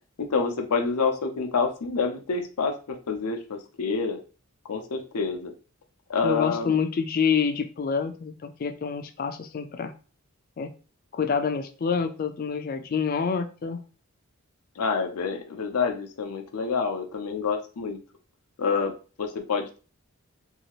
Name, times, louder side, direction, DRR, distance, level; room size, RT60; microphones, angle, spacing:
voice 1, 0.2-4.2 4.7-5.5 6.1-6.8 14.8-18.0 18.6-18.9 19.2-19.8, left 5 dB, 90° left, 5 dB, 0.6 m, -27 dB
voice 2, 6.2-9.9 10.6-10.7 11.1-13.8, left 6 dB, 40° left, 8 dB, 0.3 m, -27 dB
2.7 x 2.4 x 2.9 m, 0.36 s
head